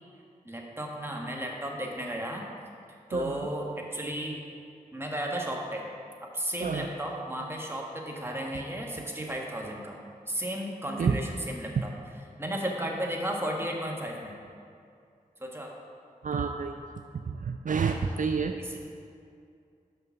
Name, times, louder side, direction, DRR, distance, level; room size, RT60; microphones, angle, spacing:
voice 1, 0.4-2.4 3.1-4.4 4.9-5.9 6.2-10.0 10.3-11.9 12.4-14.4 15.4-15.7 18.6-18.8, right 1 dB, 15° right, -1 dB, 1.3 m, -34 dB
voice 2, 3.1-3.5 6.6-6.9 11.0-11.2 16.2-16.8 17.3-18.5, right 5 dB, 65° right, 5 dB, 0.4 m, -29 dB
6.8 x 5.8 x 5.7 m, 2.4 s
cardioid pair, 50°, 15 cm